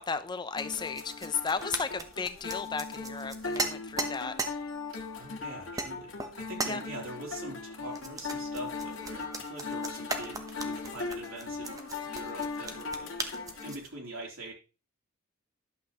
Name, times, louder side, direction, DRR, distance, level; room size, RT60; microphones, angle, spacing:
voice 1, 0.0-4.3 6.7-6.8, left 5 dB, 20° left, 0.5 m, -34 dB
sound 1, 0.5-13.7, left 4 dB, 65° left, 1.9 m, -39 dB
sound 2, 0.6-4.6 5.2-5.3 5.8-5.9 6.2-6.8 7.9-13.9, right 3 dB, 15° right, 0.9 m, -38 dB
voice 2, 5.1-13.2 13.6-14.5, right 1 dB, 75° right, 3.4 m, -43 dB
11.5 x 7.5 x 3.0 m
head